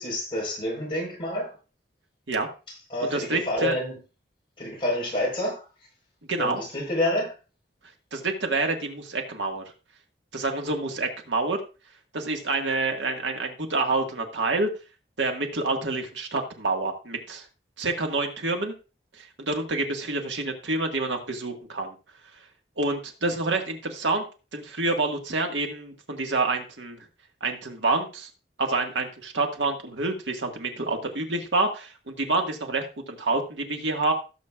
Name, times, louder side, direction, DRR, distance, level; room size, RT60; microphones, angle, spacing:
voice 1, 0.0-1.6 2.7-4.0 4.6-5.7 6.4-7.3, left 1 dB, 30° left, 4.6 m, -28 dB
voice 2, 3.0-3.7 6.3-6.6 8.1-9.6 10.3-11.6 12.1-14.7 15.2-17.4 17.8-18.7 19.2-21.9 22.8-24.2 24.5-27.0 27.4-28.3 28.6-34.1, right 3 dB, 90° right, 1.8 m, -27 dB
17.0 x 7.4 x 2.4 m
head